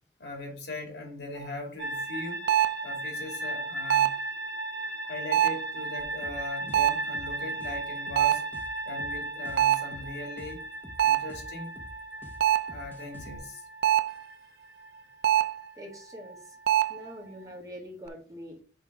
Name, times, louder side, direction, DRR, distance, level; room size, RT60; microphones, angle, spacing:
voice 1, 0.2-2.5 2.8-4.1 5.1-8.4 8.9-10.6 11.0-11.7 12.7-13.7, left 2 dB, 75° left, 2.4 m, -40 dB
sound 1, 1.4-1.5 2.5-2.9 3.9-4.3 5.3-5.7 6.7-7.1 8.2-8.6 9.6-10.0 11.0-11.4 12.4-12.8 13.8-14.2 15.2-15.7 16.7-17.0, right 11 dB, 60° right, 0.4 m, -24 dB
sound 2, 1.8-17.5, right 1 dB, 80° right, 1.3 m, -37 dB
voice 2, 4.8-5.1 15.7-16.6 16.9-18.6, equal, 20° right, 1.6 m, -44 dB
sound 3, 6.0-13.4, left 1 dB, 10° left, 0.9 m, -47 dB
5.8 x 3.6 x 4.7 m
head